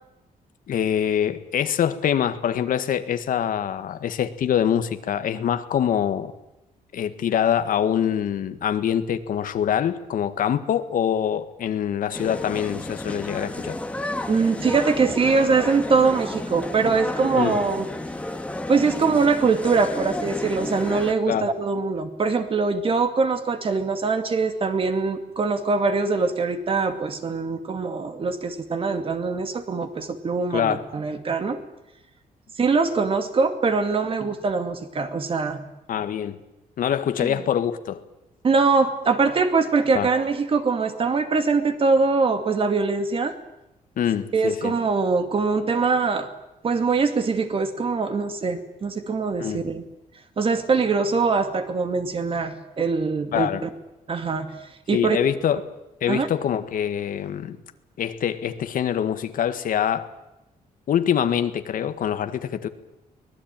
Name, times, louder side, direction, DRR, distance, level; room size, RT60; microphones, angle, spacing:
voice 1, 0.7-6.3 6.9-13.8 17.4-17.6 21.3-21.5 30.5-30.8 35.9-36.4 36.8-38.0 39.9-40.1 44.0-44.7 49.4-49.6 53.3-53.6 54.9-55.6 56.0-57.6 58.0-60.1 60.9-62.7, left 9 dB, 65° left, 10 dB, 1.7 m, -24 dB
sound 1, 12.1-21.1, left 1 dB, 10° left, 1.6 m, -32 dB
voice 2, 14.3-17.9 18.7-31.6 32.6-35.6 37.2-37.4 38.4-43.4 44.3-46.3 46.6-49.8 50.4-53.7 54.1-54.5 54.9-55.2 56.1-56.3, right 4 dB, 35° right, 8 dB, 2.3 m, -23 dB
24.0 x 19.0 x 9.1 m, 0.92 s
cardioid pair, 135°, 15 cm